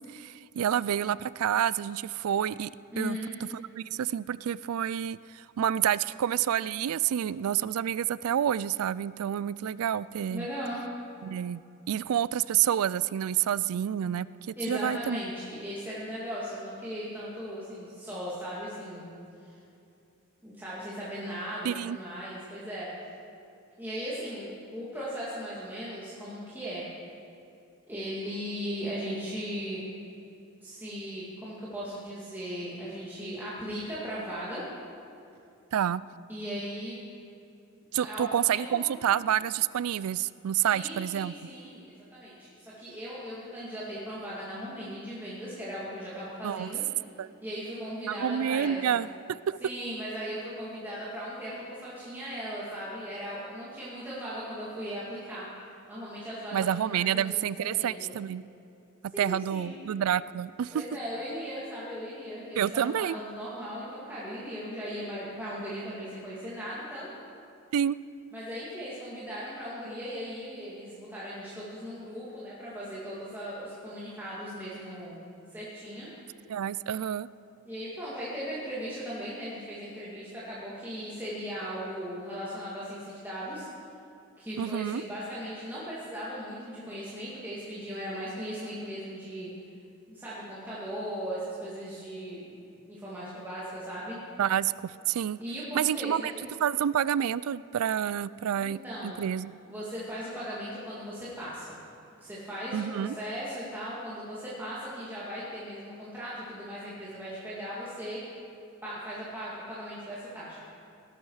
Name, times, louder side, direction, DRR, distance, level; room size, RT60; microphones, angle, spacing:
voice 1, 0.0-2.7 3.0-3.2 3.5-10.5 11.2-11.6 11.9-15.2 21.6-22.0 35.7-36.0 37.9-41.3 46.4-46.7 47.2-47.3 48.1-49.6 56.5-58.4 59.2-60.8 62.6-63.2 67.7-68.0 76.5-77.3 84.6-85.0 94.4-95.4 95.7-96.3 96.6-99.6 102.7-103.2, right 9 dB, 85° right, 19 dB, 0.3 m, -28 dB
voice 2, 2.9-3.3 10.3-10.8 14.6-19.1 19.4-19.6 20.4-22.9 23.8-26.8 27.9-29.8 30.6-34.6 36.3-37.0 37.9-38.9 40.7-46.8 47.4-49.0 49.6-55.4 55.9-58.1 59.1-59.8 60.7-67.1 68.3-75.2 75.5-76.1 77.7-83.7 84.4-89.5 90.1-92.6 92.9-94.2 95.4-96.3 98.6-99.3 99.6-101.7 102.2-108.2 108.8-110.6, equal, 10° right, -9 dB, 2.3 m, -38 dB
18.0 x 12.0 x 4.8 m, 2.7 s
head